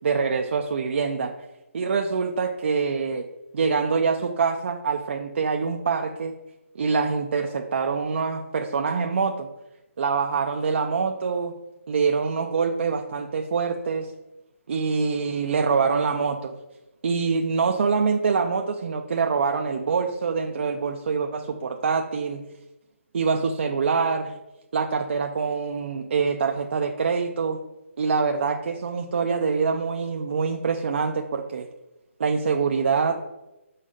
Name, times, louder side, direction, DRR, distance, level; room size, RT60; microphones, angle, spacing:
voice 1, 0.0-1.3 1.7-3.3 3.5-6.3 6.7-9.5 10.0-11.5 11.9-14.1 14.7-16.5 17.0-22.4 23.1-24.3 24.7-27.6 28.0-31.7 32.2-33.2, right 5 dB, 55° right, 3 dB, 0.5 m, -25 dB
5.7 x 4.1 x 5.0 m, 0.99 s
hypercardioid pair, 155°, 8 cm